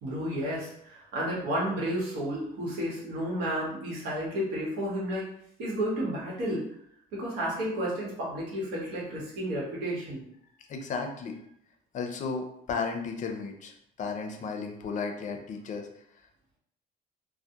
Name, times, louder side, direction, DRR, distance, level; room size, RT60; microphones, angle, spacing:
voice 1, 0.0-5.2 5.6-6.6 7.1-10.2, equal, 90° right, -4 dB, 1.0 m, -32 dB
voice 2, 10.7-11.5 11.9-15.9, left 4 dB, 45° left, 4 dB, 0.4 m, -34 dB
2.2 x 2.1 x 2.7 m, 0.72 s
cardioid pair, 110°, 17 cm